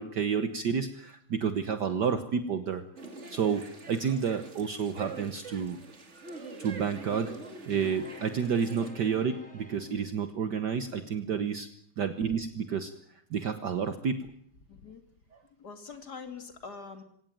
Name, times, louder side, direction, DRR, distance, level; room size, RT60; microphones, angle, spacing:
voice 1, 0.0-2.8 3.3-5.8 6.6-7.3 7.7-11.7 12.0-12.9 13.3-14.3, right 6 dB, 55° right, 9 dB, 1.6 m, -30 dB
sound 1, 3.0-8.9, right 3 dB, 35° right, 2.7 m, -45 dB
sound 2, 7.7-10.4, left 2 dB, 5° left, 7.8 m, -50 dB
voice 2, 14.7-15.0 15.6-17.0, left 5 dB, 50° left, 7 dB, 2.9 m, -44 dB
23.0 x 18.0 x 9.2 m, 0.68 s
omnidirectional pair, 2.3 m